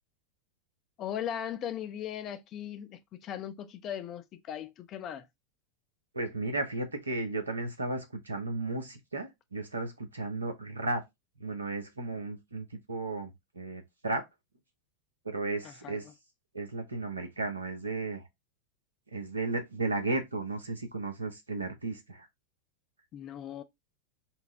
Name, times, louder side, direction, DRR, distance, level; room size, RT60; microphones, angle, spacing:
voice 1, 1.0-5.3 15.6-16.1 23.1-23.6, left 9 dB, 35° left, 0.4 m, -38 dB
voice 2, 6.1-11.0 11.4-14.2 15.2-16.0 16.5-18.3 19.1-22.3, right 2 dB, 80° right, 0.8 m, -34 dB
4.3 x 2.0 x 3.5 m
figure-of-eight pair, 90°, 0 cm